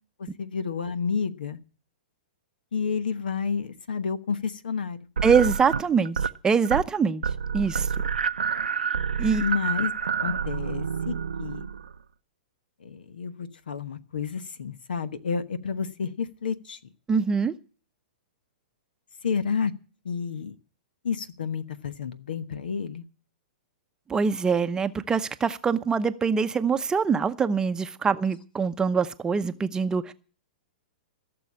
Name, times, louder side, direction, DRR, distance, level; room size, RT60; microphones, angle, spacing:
voice 1, 0.2-1.6 2.7-5.0 9.4-9.9 10.2-11.6 12.8-16.8 19.2-19.7 20.0-20.6 21.0-23.0, left 6 dB, 75° left, 1.1 m, -30 dB
voice 2, 5.2-7.2 7.5-7.9 9.2-9.4 17.1-17.5 24.1-30.1, right 5 dB, 15° right, 0.7 m, -24 dB
sound 1, 5.2-6.4 6.6-7.0 7.2-12.0, right 6 dB, 85° right, 0.6 m, -28 dB
16.5 x 7.0 x 8.6 m
hypercardioid pair, 115°, 5 cm